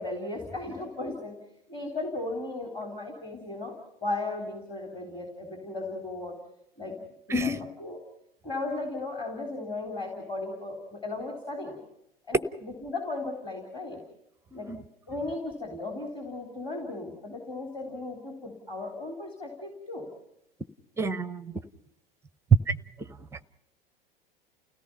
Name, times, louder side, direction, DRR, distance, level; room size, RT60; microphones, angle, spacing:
voice 1, 0.0-1.4 1.7-3.7 4.0-6.4 6.8-7.0 7.4-7.5 7.8-8.0 8.4-11.8 12.3-14.0 14.5-14.7 15.1-20.1, left 2 dB, 15° left, 3.6 m, -36 dB
voice 2, 7.3-7.7 14.5-14.8 21.0-21.6 22.7-23.4, equal, 10° right, 0.7 m, -32 dB
30.0 x 17.0 x 5.6 m
figure-of-eight pair, 90°, 29 cm